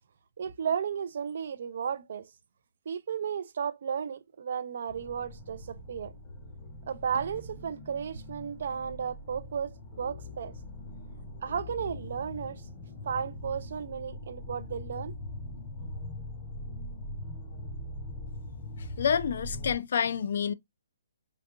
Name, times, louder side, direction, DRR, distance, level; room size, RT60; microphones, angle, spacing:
voice 1, 0.4-2.3 2.9-6.1 6.9-10.5 11.4-12.6 13.0-15.1, right 7 dB, 55° right, 0.3 m, -34 dB
sound 1, 4.9-19.8, left 1 dB, 25° left, 0.7 m, -42 dB
voice 2, 19.0-20.5, left 7 dB, 55° left, 0.3 m, -28 dB
3.8 x 2.6 x 2.3 m
hypercardioid pair, 170°, 0 cm